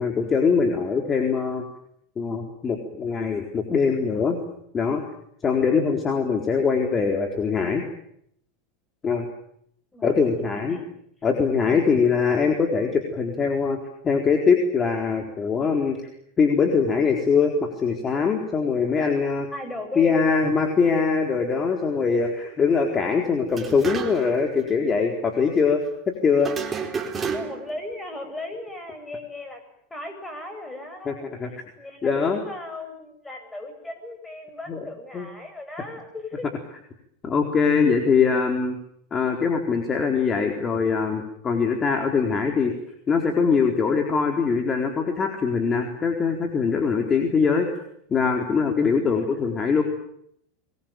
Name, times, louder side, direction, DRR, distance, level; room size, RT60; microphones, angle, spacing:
voice 1, 0.0-1.7 2.2-4.4 4.7-5.0 5.4-7.8 9.0-9.3 10.0-10.8 11.2-13.8 14.0-16.1 16.4-19.5 20.0-25.8 26.1-26.5 31.1-31.5 32.0-32.4 34.7-34.8 35.1-35.3 37.2-38.8 39.1-42.7 43.1-47.7 48.1-49.8, left 5 dB, 25° left, 4 dB, 4.1 m, -22 dB
voice 2, 9.9-10.9 19.5-20.2 22.3-22.5 27.3-29.6 29.9-36.5 49.0-49.4, left 1 dB, 10° left, 7 dB, 8.0 m, -37 dB
sound 1, 23.5-24.4 24.7-24.8 26.4-27.8, right 5 dB, 20° right, 4.1 m, -31 dB
26.0 x 22.0 x 9.1 m, 0.72 s
hypercardioid pair, 110°, 0 cm